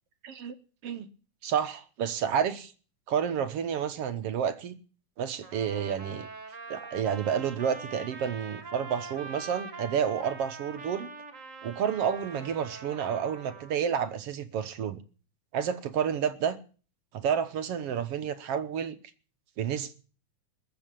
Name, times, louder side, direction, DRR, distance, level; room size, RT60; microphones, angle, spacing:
voice 1, 0.2-0.5 0.8-1.1 1.4-2.7 3.1-4.8 5.2-6.3 6.7-11.1 11.6-15.0 15.5-16.6 17.1-19.0 19.6-19.9, right 8 dB, 60° right, 1.9 m, -30 dB
Trumpet, 5.4-13.7, right 4 dB, 30° right, 2.0 m, -44 dB
21.0 x 7.9 x 7.5 m
omnidirectional pair, 3.5 m